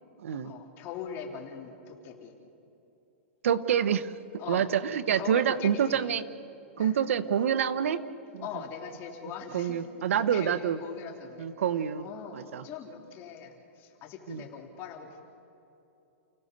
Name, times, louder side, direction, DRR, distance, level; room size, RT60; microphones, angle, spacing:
voice 1, 0.3-2.4 4.4-4.7 5.1-6.2 6.8-7.0 8.4-9.8 10.1-11.5 12.0-15.2, left 7 dB, 30° left, 2 dB, 3.2 m, -41 dB
voice 2, 3.4-4.1 4.5-6.2 6.8-8.0 8.3-8.4 9.5-10.8 11.4-12.0 12.3-12.6 14.3-14.4, right 8 dB, 80° right, 13 dB, 1.1 m, -27 dB
29.5 x 17.5 x 6.8 m, 2.8 s
hypercardioid pair, 155°, 7 cm